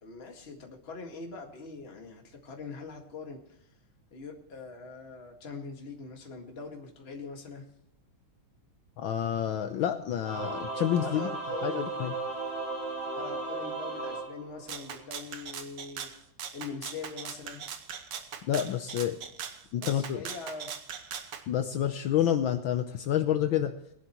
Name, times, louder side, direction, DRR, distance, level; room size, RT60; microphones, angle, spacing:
voice 1, 0.0-3.6 4.1-7.7 10.9-11.8 13.1-16.1 16.5-17.6 19.8-20.9, left 4 dB, 30° left, 2 dB, 2.0 m, -43 dB
voice 2, 9.0-11.3 11.6-12.1 18.5-19.2 19.7-20.2 21.5-23.7, left 10 dB, 70° left, 7 dB, 1.5 m, -28 dB
Singing / Musical instrument, 10.2-15.1, right 3 dB, 15° left, 2.6 m, -35 dB
Rattle (instrument), 14.7-21.4, right 7 dB, 60° right, 1.6 m, -40 dB
21.5 x 11.0 x 3.0 m, 0.77 s
omnidirectional pair, 2.3 m